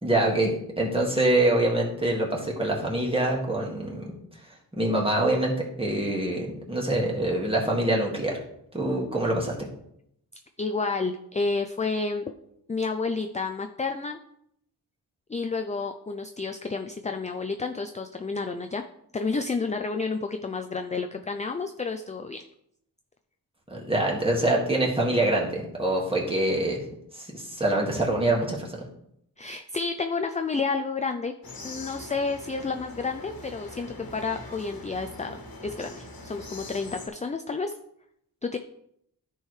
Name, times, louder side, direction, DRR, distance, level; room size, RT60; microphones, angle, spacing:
voice 1, 0.0-4.1 4.7-8.4 8.7-9.7 23.7-26.8 27.1-28.7, right 1 dB, 15° right, -2 dB, 1.9 m, -25 dB
voice 2, 10.6-12.3 12.7-14.2 15.3-18.8 19.1-22.4 29.4-31.3 31.6-37.7 38.4-38.6, left 4 dB, 20° left, 6 dB, 0.3 m, -30 dB
sound 1, 31.4-37.1, left 2 dB, 65° left, 1.5 m, -42 dB
13.5 x 4.6 x 3.2 m, 0.75 s
wide cardioid pair, 125°, 39 cm